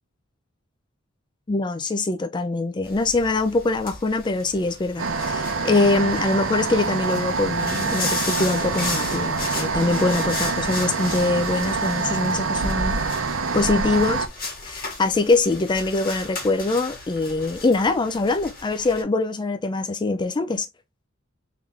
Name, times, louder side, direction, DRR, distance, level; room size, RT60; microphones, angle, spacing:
voice 1, 1.5-13.0 13.5-20.7, left 3 dB, 20° left, 0.4 m, -23 dB
sound 1, 2.8-19.0, left 3 dB, 45° left, 1.8 m, -35 dB
sound 2, 5.0-14.3, right 4 dB, 75° right, 0.7 m, -26 dB
3.6 x 3.2 x 3.4 m
head